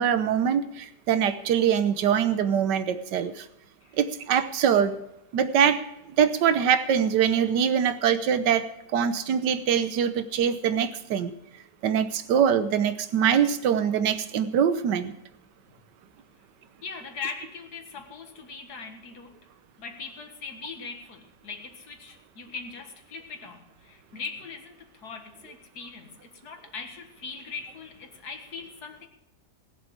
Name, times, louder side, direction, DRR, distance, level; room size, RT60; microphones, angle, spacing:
voice 1, 0.0-3.5 3.9-5.0 5.3-5.8 6.2-11.3 11.8-15.1, right 8 dB, 80° right, 11 dB, 1.5 m, -23 dB
voice 2, 16.8-19.4 19.8-29.1, left 5 dB, 65° left, 5 dB, 2.2 m, -40 dB
20.0 x 7.5 x 4.8 m, 0.86 s
omnidirectional pair, 1.8 m